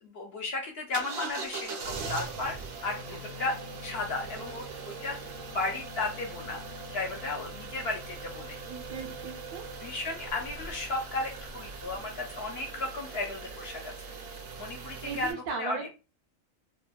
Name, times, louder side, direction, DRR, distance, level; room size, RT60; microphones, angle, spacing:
voice 1, 0.0-3.6 3.8-5.2 5.5-6.6 6.9-8.6 9.8-13.9 14.6-15.8, left 3 dB, 65° left, 1 dB, 0.6 m, -34 dB
sound 1, 0.9-15.3, right 4 dB, 65° right, 0.9 m, -41 dB
voice 2, 8.7-9.6 15.0-15.9, right 5 dB, 85° right, 4 dB, 1.1 m, -37 dB
3.4 x 2.1 x 2.2 m, 0.30 s
omnidirectional pair, 1.4 m